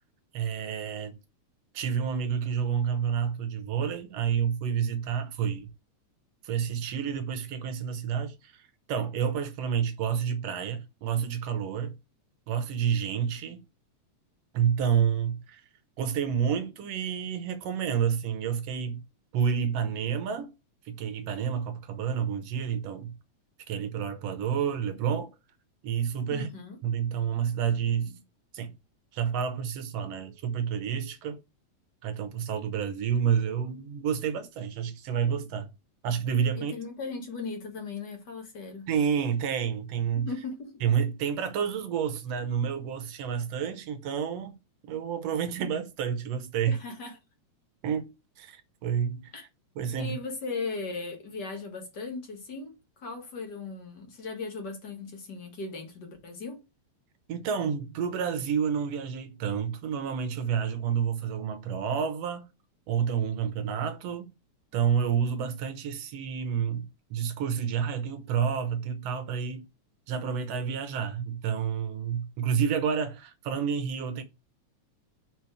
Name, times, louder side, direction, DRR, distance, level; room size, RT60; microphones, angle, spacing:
voice 1, 0.3-1.2 1.7-5.7 6.4-12.0 12.5-13.6 14.5-15.6 16.0-19.0 19.3-20.5 20.9-23.1 23.7-25.3 25.8-26.5 26.8-28.2 28.5-28.8 29.1-31.4 32.0-35.7 36.0-36.7 38.9-40.3 40.8-44.6 44.8-46.8 47.8-49.3 49.8-50.2 57.3-62.5 62.9-64.3 64.7-69.7 70.1-74.2, right 7 dB, 70° right, 1.8 m, -29 dB
voice 2, 26.3-26.8 36.6-38.9 40.2-40.7 46.7-47.2 49.3-49.5 50.0-56.6, left 4 dB, 40° left, 1.8 m, -37 dB
5.2 x 4.5 x 4.7 m
omnidirectional pair, 3.3 m